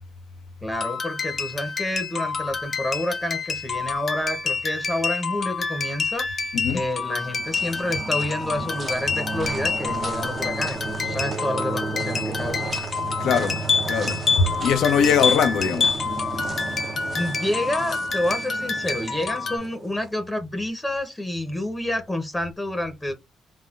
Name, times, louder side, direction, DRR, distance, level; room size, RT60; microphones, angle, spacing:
voice 1, 0.6-12.7 16.6-23.1, left 1 dB, 15° left, 0.8 m, -29 dB
sound 1, 0.7-19.6, left 5 dB, 45° left, 0.7 m, -28 dB
voice 2, 6.5-6.8 13.2-14.2 14.6-15.9, left 7 dB, 80° left, 0.7 m, -22 dB
sound 2, 6.8-20.1, right 4 dB, 40° right, 0.6 m, -33 dB
3.5 x 2.3 x 2.4 m
cardioid pair, 90°, 0 cm